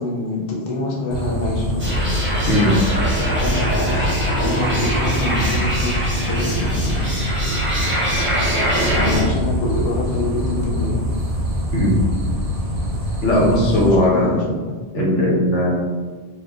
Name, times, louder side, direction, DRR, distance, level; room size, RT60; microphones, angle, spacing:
voice 1, 0.0-1.9 3.3-7.1 8.7-11.0 13.7-14.7, left 2 dB, 60° left, -3 dB, 0.7 m, -26 dB
sound 1, 1.1-13.9, equal, 60° right, 0.7 m, -24 dB
sound 2, 1.8-9.2, equal, 15° right, 0.4 m, -23 dB
voice 2, 13.2-14.4 14.9-15.7, left 1 dB, 90° left, -4 dB, 1.1 m, -17 dB
3.0 x 2.2 x 2.4 m, 1.4 s
omnidirectional pair, 1.2 m